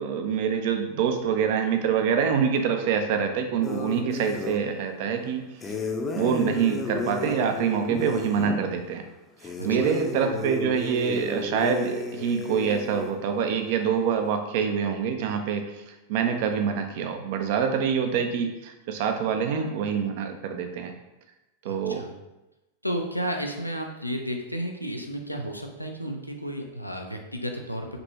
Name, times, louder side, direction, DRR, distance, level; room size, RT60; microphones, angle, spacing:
voice 1, 0.0-5.4 6.1-9.0 9.6-15.6 16.1-20.9 21.6-22.0, right 7 dB, 50° right, 6 dB, 0.5 m, -25 dB
sound 1, 3.6-4.6 5.6-8.6 9.4-13.1, left 3 dB, 15° left, 0.5 m, -33 dB
voice 2, 21.6-22.1 22.8-28.0, equal, 90° left, 3 dB, 0.4 m, -32 dB
5.1 x 2.9 x 2.9 m, 0.98 s
figure-of-eight pair, 90°, 0 cm